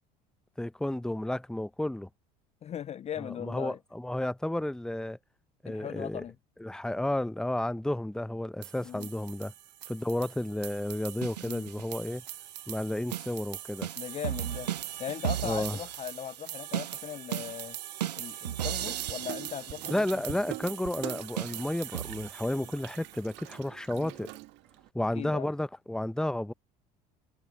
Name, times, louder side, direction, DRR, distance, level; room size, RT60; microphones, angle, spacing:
voice 1, 0.6-2.1 3.2-5.2 5.6-6.2 6.6-9.5 9.9-12.2 12.7-13.9 15.4-15.8 19.9-24.3 24.9-26.5, left 1 dB, 5° left, 0.8 m, -32 dB
voice 2, 2.6-3.8 5.7-6.3 8.8-9.1 11.4-11.7 14.0-14.7 15.0-17.8 18.2-20.4 23.9-24.1 25.1-25.5, left 10 dB, 35° left, 0.5 m, -39 dB
sound 1, 8.6-23.2, right 11 dB, 90° right, 0.4 m, -38 dB
Water tap faucet / Sink (filling or washing), 18.8-24.9, right 21 dB, 60° right, 1.7 m, -44 dB
hypercardioid pair, 70°, 20 cm